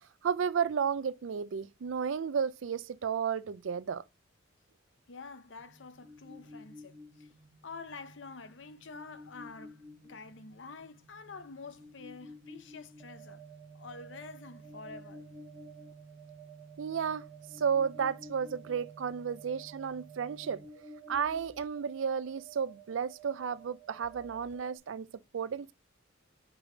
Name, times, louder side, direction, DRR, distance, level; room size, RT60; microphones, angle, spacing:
voice 1, 0.2-4.0 16.8-17.2 17.6-20.6 21.1-25.7, right 7 dB, 80° right, 0.4 m, -33 dB
voice 2, 5.1-7.3 7.6-13.4 13.7-15.2 19.3-19.6, left 4 dB, 70° left, 0.7 m, -48 dB
sound 1, 5.6-24.8, right 2 dB, 15° right, 0.8 m, -52 dB
4.9 x 4.8 x 5.0 m
head